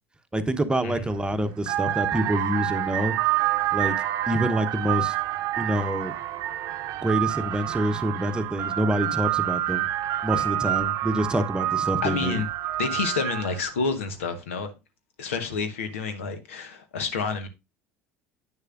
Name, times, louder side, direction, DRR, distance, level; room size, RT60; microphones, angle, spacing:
voice 1, 0.3-3.1 3.7-4.0 4.3-5.2 5.6-6.1 7.0-9.9 10.2-12.4, right 1 dB, 10° right, 0.9 m, -26 dB
sound 1, 1.0-1.2 1.6-13.7, right 14 dB, 55° right, 0.7 m, -28 dB
voice 2, 12.0-12.5 12.8-14.7 15.2-17.5, left 5 dB, 80° left, 1.1 m, -29 dB
8.9 x 6.6 x 2.5 m
hypercardioid pair, 65°, 7 cm